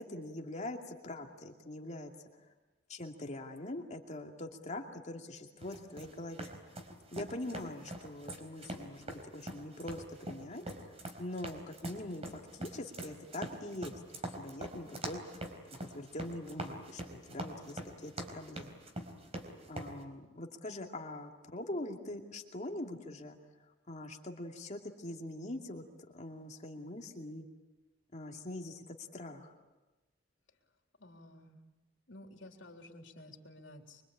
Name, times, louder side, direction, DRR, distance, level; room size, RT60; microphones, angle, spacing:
voice 1, 0.0-2.1 2.9-6.5 7.1-10.6 11.2-13.9 14.4-15.2 15.6-18.8 19.7-23.4 23.9-27.4 28.1-29.5, left 1 dB, 40° left, 2 dB, 2.6 m, -43 dB
sound 1, 5.6-19.9, right 1 dB, 35° right, 4.1 m, -44 dB
voice 2, 17.4-17.9 31.0-31.6 32.1-34.0, left 1 dB, 75° left, 3 dB, 3.7 m, -53 dB
25.0 x 24.5 x 8.7 m, 1.1 s
head